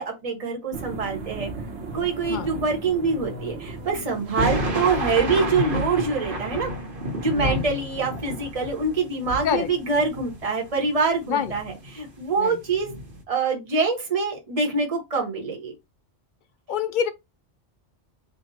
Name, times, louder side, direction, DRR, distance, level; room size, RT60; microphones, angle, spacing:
voice 1, 0.0-1.5 1.9-6.7 7.2-12.9 13.3-15.7, right 4 dB, 35° right, 1.1 m, -25 dB
sound 1, 0.7-5.6, right 4 dB, 85° right, 1.2 m, -38 dB
sound 2, 1.8-5.0, left 1 dB, 45° left, 1.3 m, -42 dB
sound 3, 4.3-11.0 11.4-12.2 12.6-13.2, right 1 dB, 55° right, 1.2 m, -30 dB
voice 2, 16.7-17.1, left 8 dB, 60° left, 0.6 m, -26 dB
3.5 x 2.3 x 4.1 m
omnidirectional pair, 1.1 m